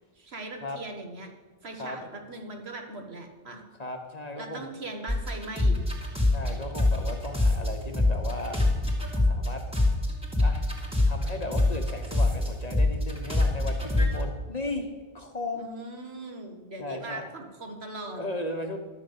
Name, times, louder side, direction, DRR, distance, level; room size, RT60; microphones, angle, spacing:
voice 1, 0.2-1.3 1.6-3.6 4.4-5.8 15.6-18.2, right 2 dB, 70° right, 3 dB, 1.9 m, -40 dB
voice 2, 3.8-4.7 6.3-8.6 9.3-9.6 10.4-10.6 11.0-14.9 15.1-15.8 16.8-17.2 18.1-18.8, left 2 dB, 40° left, 4 dB, 1.3 m, -35 dB
sound 1, 5.1-7.7 7.9-14.2, left 2 dB, 5° right, 2.2 m, -24 dB
12.0 x 6.6 x 8.3 m, 1.2 s
omnidirectional pair, 1.1 m